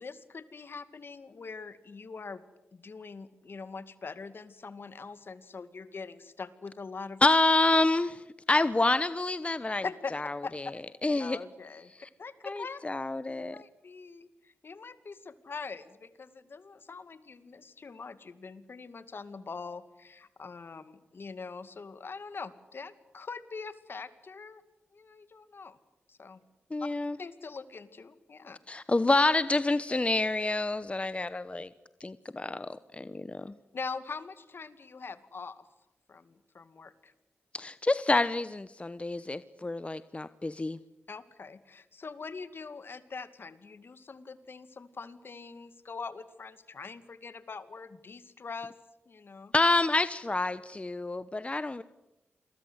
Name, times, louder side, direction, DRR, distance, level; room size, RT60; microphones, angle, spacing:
voice 1, 0.0-2.4 2.7-7.2 9.8-10.8 11.2-11.9 12.2-12.8 13.5-24.6 24.9-25.8 26.1-26.4 27.2-28.6 33.7-35.6 36.1-37.1 41.1-48.7 49.1-49.5, left 4 dB, 60° left, 12 dB, 2.2 m, -43 dB
voice 2, 7.2-8.2 8.5-9.8 10.2-10.3 11.0-11.4 12.4-13.5 26.7-27.2 28.7-31.7 32.0-33.5 37.5-40.8 49.5-51.8, left 2 dB, 30° left, 14 dB, 1.0 m, -27 dB
29.0 x 23.0 x 8.1 m, 0.98 s
cardioid pair, 45°, 4 cm